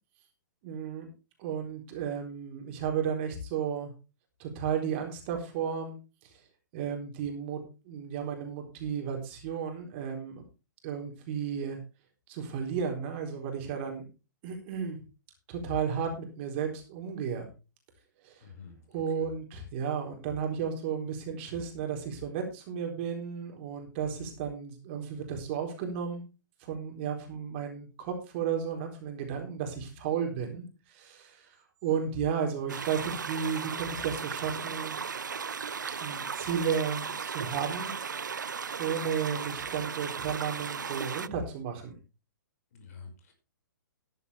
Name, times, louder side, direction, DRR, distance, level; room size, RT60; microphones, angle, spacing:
voice 1, 0.6-1.1 1.4-3.9 4.4-6.0 6.2-6.3 6.7-10.4 10.8-11.8 12.3-14.0 14.4-15.0 15.5-17.5 18.2-18.4 18.9-26.2 26.6-31.6 31.8-35.0 36.0-37.9 38.8-42.0, right 7 dB, 35° right, 3 dB, 4.1 m, -33 dB
voice 2, 18.4-19.3 42.7-43.3, left 5 dB, 50° left, 5 dB, 5.6 m, -49 dB
sound 1, 32.7-41.3, right 6 dB, 70° right, 0.6 m, -36 dB
14.0 x 11.0 x 3.4 m, 0.31 s
figure-of-eight pair, 120°, 11 cm